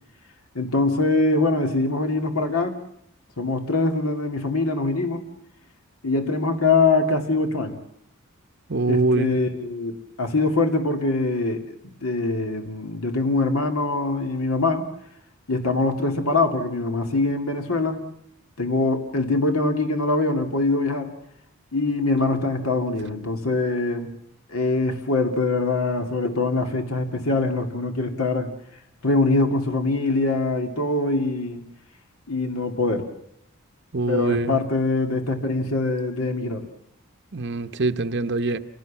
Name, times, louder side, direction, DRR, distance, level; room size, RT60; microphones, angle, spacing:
voice 1, 0.5-2.8 3.4-5.2 6.0-7.8 8.9-14.9 15.5-18.0 18.6-21.2 21.7-24.1 24.5-28.5 29.0-31.6 32.3-33.1 34.1-36.7, left 3 dB, 80° left, 5 dB, 2.4 m, -23 dB
voice 2, 8.7-9.4 33.9-34.6 37.3-38.6, right 3 dB, 50° right, 8 dB, 0.9 m, -23 dB
27.5 x 17.0 x 7.3 m, 0.72 s
head